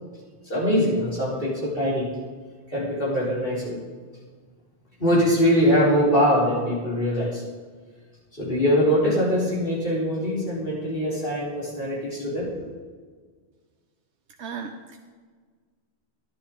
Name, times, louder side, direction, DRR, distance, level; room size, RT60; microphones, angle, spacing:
voice 1, 0.4-2.0 2.7-3.8 5.0-7.4 8.4-12.5, equal, 55° left, -7 dB, 4.4 m, -22 dB
voice 2, 14.4-15.0, right 5 dB, 85° right, 3 dB, 1.1 m, -35 dB
11.5 x 11.5 x 3.8 m, 1.5 s
omnidirectional pair, 1.1 m